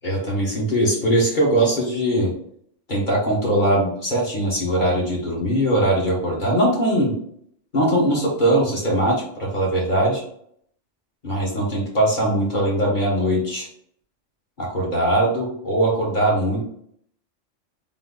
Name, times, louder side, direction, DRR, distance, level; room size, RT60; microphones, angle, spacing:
voice 1, 0.0-2.3 2.9-7.1 7.7-10.2 11.2-13.7 14.6-16.6, right 1 dB, 45° left, -4 dB, 1.3 m, -21 dB
3.7 x 2.8 x 3.9 m, 0.67 s
omnidirectional pair, 1.2 m